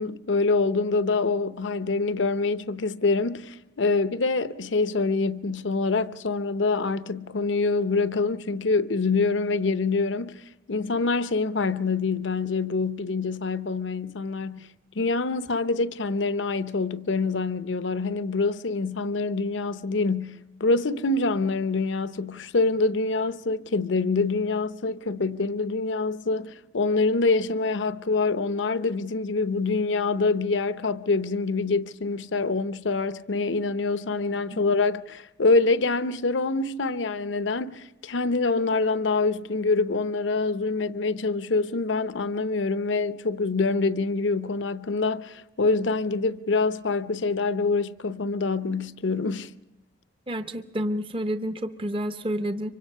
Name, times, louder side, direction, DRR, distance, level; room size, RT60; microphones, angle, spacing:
voice 1, 0.0-10.4 10.7-14.7 14.9-49.5, left 3 dB, 80° left, 0.7 m, -25 dB
voice 2, 50.3-52.7, equal, 30° right, 0.7 m, -29 dB
25.0 x 24.5 x 5.5 m
head